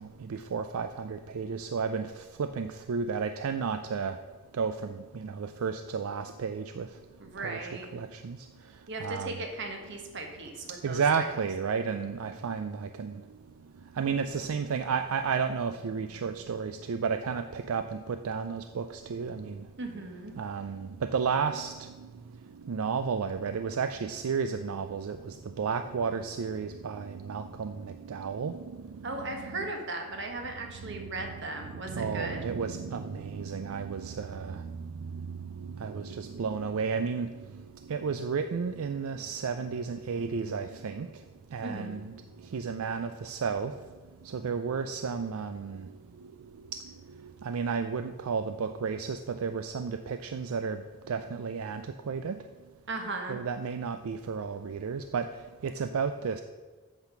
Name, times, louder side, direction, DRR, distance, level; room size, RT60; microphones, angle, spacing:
voice 1, 0.0-4.2 4.5-6.9 7.4-8.4 9.0-9.4 10.8-13.2 14.0-19.7 20.4-22.1 22.7-28.8 29.1-29.7 30.8-31.3 31.9-37.3 37.9-41.1 41.5-42.1 42.5-43.7 44.2-45.9 46.7-46.8 47.2-50.8 51.1-52.4 53.3-55.3 55.6-56.4, right 5 dB, 75° right, 9 dB, 0.4 m, -32 dB
voice 2, 7.2-7.9 8.9-11.0 19.8-20.3 29.0-32.4 41.6-42.1 52.9-53.4, right 2 dB, 55° right, 3 dB, 1.4 m, -37 dB
8.9 x 5.8 x 6.0 m, 1.3 s
head